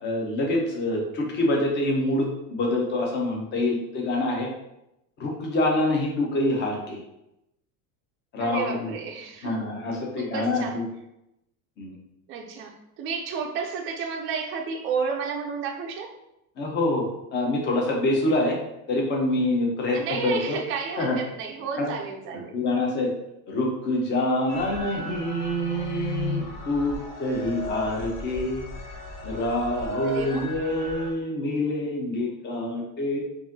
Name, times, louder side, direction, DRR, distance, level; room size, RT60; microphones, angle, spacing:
voice 1, 0.0-4.5 5.2-7.0 8.3-8.9 9.4-10.8 11.8-11.9 16.6-18.6 18.9-20.6 21.0-21.2 21.8-21.9 22.3-23.1 23.5-28.6 29.2-33.2, left 1 dB, 25° left, -1 dB, 0.7 m, -26 dB
voice 2, 8.4-9.7 10.2-10.8 12.3-16.1 19.9-22.5 30.0-30.5, right 6 dB, 30° right, 2 dB, 0.5 m, -32 dB
sound 1, 24.5-31.1, left 1 dB, 80° left, 1.0 m, -35 dB
4.8 x 2.6 x 2.7 m, 0.86 s
cardioid pair, 155°, 41 cm